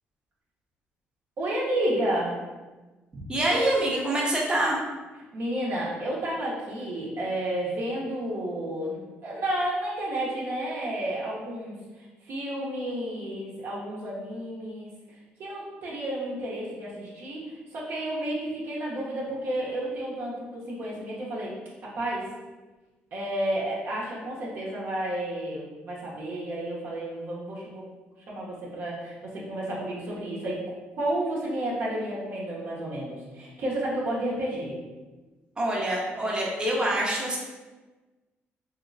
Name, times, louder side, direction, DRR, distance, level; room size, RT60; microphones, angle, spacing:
voice 1, 1.4-2.4 5.3-14.9 15.4-21.5 21.8-22.2 23.1-27.8 28.3-30.6 31.0-34.8, right 1 dB, 60° right, -6 dB, 0.8 m, -31 dB
voice 2, 3.3-4.8 35.6-37.4, right 1 dB, 20° right, -4 dB, 0.7 m, -25 dB
3.0 x 2.9 x 2.6 m, 1.2 s
cardioid pair, 95°, 4 cm